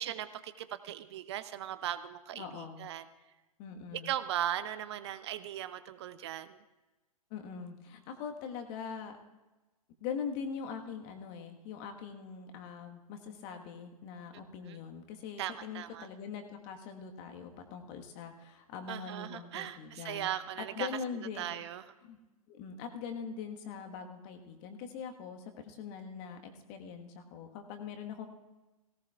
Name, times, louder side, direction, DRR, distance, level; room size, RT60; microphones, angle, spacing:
voice 1, 0.0-3.0 4.0-6.6 14.7-14.8 15.4-16.1 18.9-20.9 21.4-21.8, right 11 dB, 45° right, 13 dB, 0.6 m, -38 dB
voice 2, 2.3-2.9 3.6-4.1 7.3-9.1 10.0-20.3 20.6-21.4 22.0-22.2 22.5-28.3, left 6 dB, 35° left, 5 dB, 1.5 m, -42 dB
17.5 x 17.5 x 2.4 m, 1.1 s
figure-of-eight pair, 105°, 19 cm